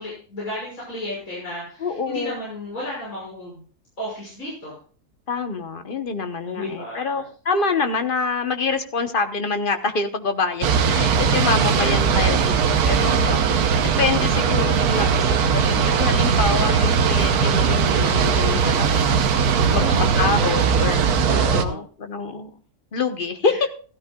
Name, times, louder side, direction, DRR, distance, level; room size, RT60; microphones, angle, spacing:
voice 1, 0.0-3.6 4.0-4.8 6.4-7.2 11.8-12.4 19.7-21.8 23.4-23.6, left 1 dB, 60° left, -6 dB, 6.6 m, -33 dB
voice 2, 1.8-2.4 5.3-19.2 19.7-19.8 20.2-22.5 22.9-23.5, left 4 dB, 40° left, 8 dB, 1.1 m, -26 dB
sound 1, 10.6-21.6, right 6 dB, 80° right, 1.4 m, -19 dB
16.0 x 13.0 x 2.3 m, 0.40 s
omnidirectional pair, 1.6 m